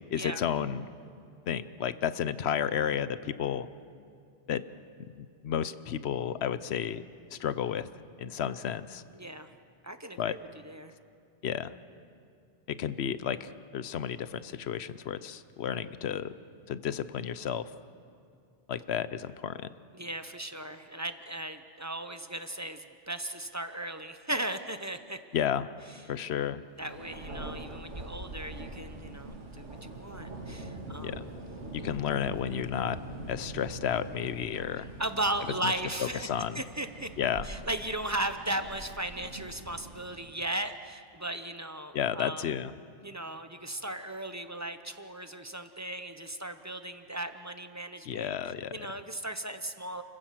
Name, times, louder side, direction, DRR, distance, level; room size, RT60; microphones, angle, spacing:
voice 1, 0.1-0.9 1.5-3.7 4.5-4.6 5.1-7.0 7.3-7.9 8.2-9.0 10.2-10.3 11.4-11.7 12.7-16.3 16.7-17.7 18.7-19.7 25.3-25.7 26.1-26.6 31.0-31.2 31.7-33.0 33.3-34.9 35.6-35.7 36.0-36.6 37.2-37.5 41.9-42.7 48.1-48.9, left 9 dB, 65° left, 15 dB, 0.9 m, -32 dB
voice 2, 9.1-9.5 9.8-10.4 10.6-10.9 19.9-25.2 26.8-31.3 34.8-36.3 36.5-37.1 37.4-42.5 43.0-48.3 48.7-50.0, right 1 dB, 15° right, 9 dB, 0.7 m, -36 dB
Thunder, 26.8-40.4, right 2 dB, 75° right, 2.7 m, -43 dB
29.5 x 15.0 x 7.5 m, 2.4 s
omnidirectional pair, 1.2 m